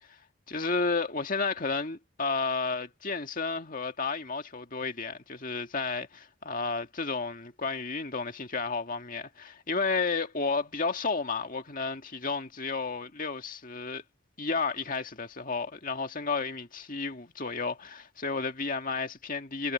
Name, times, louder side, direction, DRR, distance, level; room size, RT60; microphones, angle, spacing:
voice 1, 0.5-14.0 14.4-19.7, left 4 dB, 40° left, 1.9 m, -32 dB
head